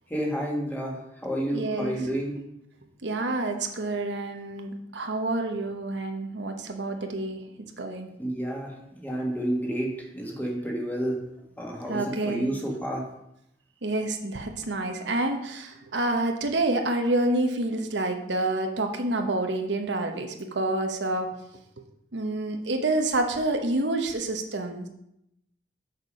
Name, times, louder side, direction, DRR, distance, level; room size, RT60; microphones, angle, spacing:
voice 1, 0.1-2.4 8.2-11.2 11.6-13.1, right 1 dB, 10° left, 0 dB, 1.6 m, -30 dB
voice 2, 1.5-2.0 3.0-8.1 11.9-12.5 13.8-21.3 22.1-24.9, right 2 dB, 65° right, 4 dB, 1.0 m, -28 dB
6.7 x 6.7 x 5.4 m, 0.80 s
head